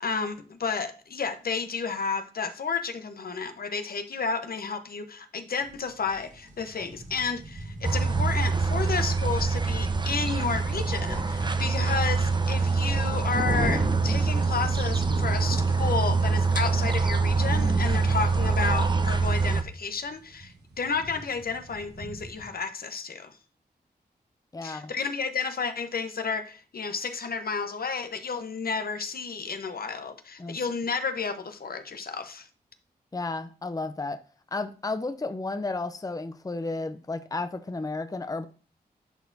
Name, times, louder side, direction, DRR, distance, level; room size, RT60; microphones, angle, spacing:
voice 1, 0.0-23.4 24.6-32.5, left 5 dB, 60° left, 1.0 m, -31 dB
sound 1, 5.6-22.5, right 2 dB, 80° right, 1.5 m, -46 dB
sound 2, 6.4-6.5 9.0-9.1 9.5-9.6 11.2-19.4, right 2 dB, 50° right, 1.6 m, -34 dB
sound 3, 7.8-19.6, right 4 dB, 25° right, 0.8 m, -25 dB
voice 2, 24.5-24.9 30.4-30.6 33.1-34.2 34.5-38.5, left 3 dB, 20° left, 0.6 m, -32 dB
11.5 x 4.1 x 2.7 m
cardioid pair, 45°, 17 cm